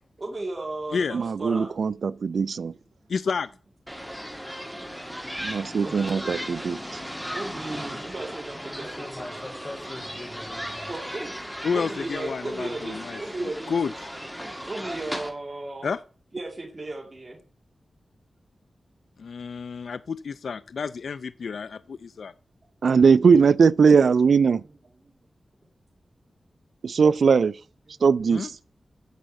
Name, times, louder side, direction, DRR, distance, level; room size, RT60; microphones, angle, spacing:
voice 1, 0.2-1.7 3.0-3.1 5.8-6.2 6.7-9.5 10.9-11.3 11.7-13.7 14.7-15.9 16.3-17.4 25.0-25.1, right 2 dB, 35° right, 2.2 m, -35 dB
voice 2, 1.1-2.7 5.4-6.8 22.8-24.6 26.8-27.5 28.0-28.5, right 5 dB, 80° right, 0.4 m, -19 dB
voice 3, 3.1-3.5 11.6-13.9 15.8-16.0 19.2-22.3 28.3-28.5, left 5 dB, 85° left, 0.3 m, -30 dB
sound 1, 3.9-15.3, equal, ahead, 1.6 m, -36 dB
voice 4, 8.7-10.9, left 2 dB, 35° left, 2.2 m, -41 dB
8.2 x 5.2 x 7.7 m
wide cardioid pair, 115°, 0 cm